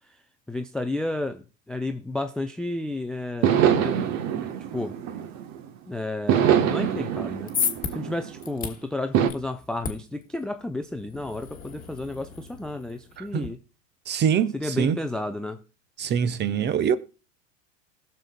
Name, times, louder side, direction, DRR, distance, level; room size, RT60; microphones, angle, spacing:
voice 1, 0.5-5.0 5.9-7.5 7.9-13.6 14.5-15.6, left 2 dB, ahead, 0.4 m, -32 dB
sound 1, 3.4-5.7 6.3-8.5 9.1-9.3, right 9 dB, 45° right, 1.1 m, -24 dB
sound 2, 7.1-13.5, left 6 dB, 20° left, 1.5 m, -35 dB
voice 2, 14.1-15.0 16.0-17.0, right 8 dB, 25° right, 0.8 m, -24 dB
20.0 x 6.9 x 2.2 m
hypercardioid pair, 90°, 39 cm